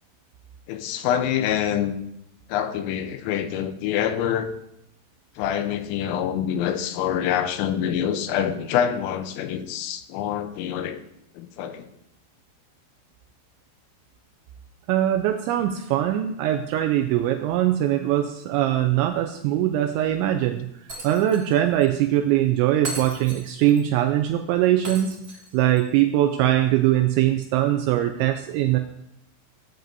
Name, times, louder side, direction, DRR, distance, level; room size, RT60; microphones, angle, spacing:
voice 1, 0.7-1.9 2.5-4.5 5.4-11.0 11.4-11.9, left 9 dB, 90° left, 8 dB, 3.3 m, -26 dB
voice 2, 14.9-20.7 21.0-25.2 25.5-28.8, right 12 dB, 90° right, 6 dB, 2.6 m, -22 dB
Shatter, 20.9-21.5 21.8-21.9 22.8-23.8 24.8-25.8, right 2 dB, 55° right, 0.9 m, -37 dB
17.0 x 9.1 x 2.7 m, 0.77 s
omnidirectional pair, 5.9 m